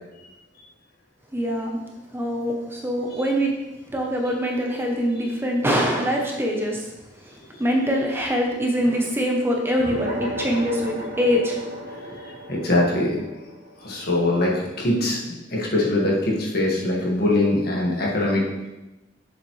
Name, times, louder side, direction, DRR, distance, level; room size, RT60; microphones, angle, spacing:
voice 1, 1.3-1.8 2.1-3.5 3.9-11.6, equal, 10° right, 0 dB, 0.8 m, -24 dB
sound 1, 9.8-14.6, equal, 50° right, 1.4 m, -34 dB
voice 2, 12.5-13.2 13.8-18.4, left 1 dB, 55° left, -3 dB, 1.8 m, -22 dB
7.2 x 7.1 x 3.2 m, 1.0 s
head